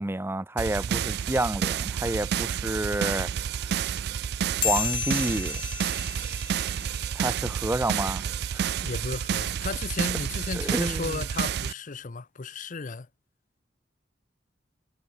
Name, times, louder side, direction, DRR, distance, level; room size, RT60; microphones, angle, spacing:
voice 1, 0.0-3.3 4.6-5.6 7.1-8.2 8.5-8.7 10.5-11.2, right 1 dB, 15° right, 0.6 m, -29 dB
sound 1, 0.6-11.7, right 8 dB, 60° right, 0.3 m, -30 dB
Laughter, 2.1-8.3, equal, 10° left, 6.1 m, -62 dB
sound 2, 4.6-7.5, left 7 dB, 25° left, 2.1 m, -33 dB
voice 2, 8.8-13.1, left 4 dB, 45° left, 0.7 m, -34 dB
head